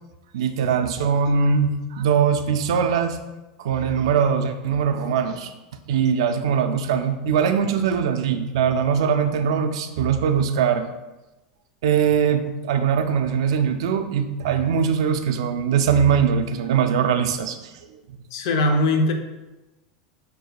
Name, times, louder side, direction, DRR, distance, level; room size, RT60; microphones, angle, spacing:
voice 1, 0.3-3.2 3.6-5.5 5.9-10.9 11.8-17.6, right 7 dB, 80° right, 8 dB, 0.4 m, -21 dB
voice 2, 18.3-19.1, left 2 dB, 70° left, 4 dB, 0.6 m, -20 dB
5.9 x 2.7 x 2.2 m, 1.1 s
supercardioid pair, 155°, 3 cm